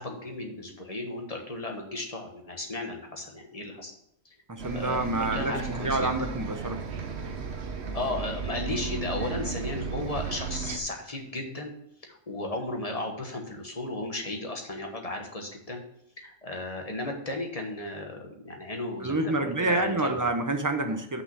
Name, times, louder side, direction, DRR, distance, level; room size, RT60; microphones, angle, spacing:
voice 1, 0.0-3.9 4.7-6.1 7.9-11.7 12.0-15.8 16.2-20.3, left 2 dB, 30° left, 2 dB, 1.3 m, -35 dB
voice 2, 4.5-6.8 19.0-21.2, right 2 dB, 20° right, 6 dB, 0.5 m, -28 dB
Bus, 4.6-10.8, right 5 dB, 55° right, 1.1 m, -34 dB
6.1 x 5.7 x 6.1 m, 0.72 s
omnidirectional pair, 1.4 m